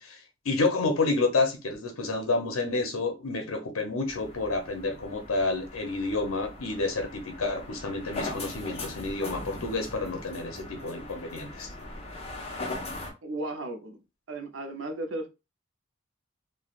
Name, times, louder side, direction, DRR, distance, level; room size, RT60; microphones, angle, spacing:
voice 1, 0.0-11.7, left 3 dB, 80° left, 0.7 m, -29 dB
sound 1, 4.1-13.1, left 2 dB, 30° left, 0.6 m, -40 dB
voice 2, 13.2-14.0 14.3-15.3, right 2 dB, 60° right, 0.6 m, -35 dB
3.2 x 2.2 x 2.4 m
head